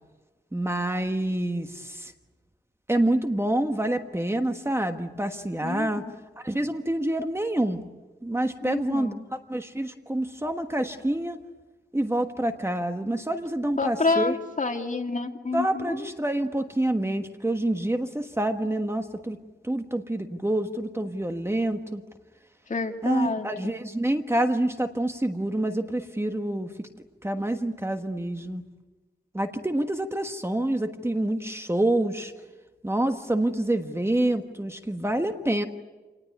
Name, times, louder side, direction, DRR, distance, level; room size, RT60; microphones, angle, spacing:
voice 1, 0.5-2.1 2.9-6.0 6.4-7.8 8.2-11.4 11.9-14.3 15.5-19.4 19.6-22.0 23.0-26.9 27.2-28.6 29.3-32.3 32.8-35.6, right 1 dB, 15° right, 6 dB, 1.4 m, -27 dB
voice 2, 5.6-6.1 8.6-9.2 13.8-16.1 22.7-23.7, left 3 dB, 45° left, 3 dB, 2.3 m, -29 dB
28.0 x 19.5 x 9.4 m, 1.2 s
wide cardioid pair, 115°, 18 cm